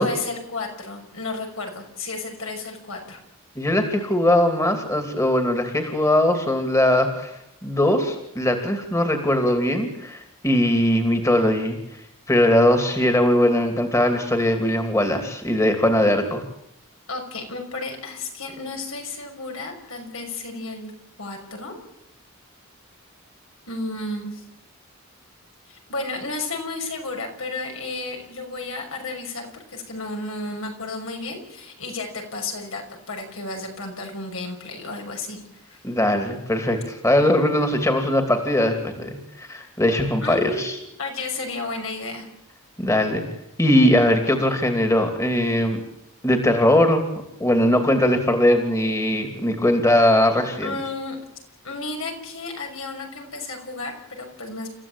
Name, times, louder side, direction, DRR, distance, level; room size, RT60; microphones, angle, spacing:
voice 1, 0.0-3.2 9.8-10.0 17.1-20.9 21.2-21.7 23.7-24.4 25.7-32.8 33.1-35.8 40.2-40.7 41.0-42.3 50.6-51.2 51.6-54.7, left 3 dB, 70° left, 2 dB, 6.0 m, -32 dB
voice 2, 3.6-7.3 7.6-11.8 12.3-16.4 35.8-40.7 42.8-43.2 43.6-45.8 46.2-47.0 47.4-50.7, left 1 dB, 15° left, 5 dB, 2.7 m, -20 dB
29.5 x 15.0 x 8.9 m, 0.80 s
head